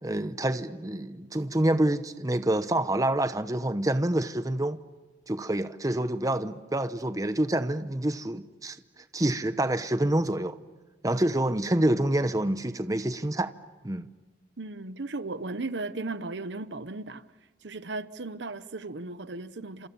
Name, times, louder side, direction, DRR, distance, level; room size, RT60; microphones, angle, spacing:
voice 1, 0.0-4.8 5.3-8.8 9.1-10.6 11.0-13.5 13.8-14.1, right 1 dB, 20° right, 0.9 m, -27 dB
voice 2, 14.6-17.2 17.6-19.9, right 3 dB, 80° right, 1.0 m, -36 dB
30.0 x 27.5 x 7.0 m
head